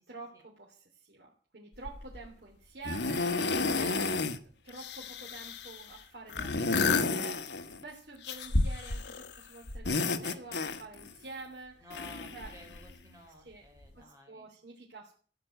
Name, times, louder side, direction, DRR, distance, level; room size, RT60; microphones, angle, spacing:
voice 1, 0.1-11.9 12.3-12.5 13.4-13.7 13.9-15.1, right 3 dB, 65° right, -2 dB, 3.1 m, -48 dB
sound 1, 1.8-2.2 2.8-4.4 4.7-5.8 6.3-7.8 8.2-9.3 9.7-11.1 11.9-13.0 13.8-13.9, left 3 dB, 75° left, 1.3 m, -31 dB
voice 2, 3.7-4.3 11.8-14.5, equal, 20° right, 1 dB, 5.1 m, -52 dB
15.0 x 9.1 x 9.3 m, 0.43 s
head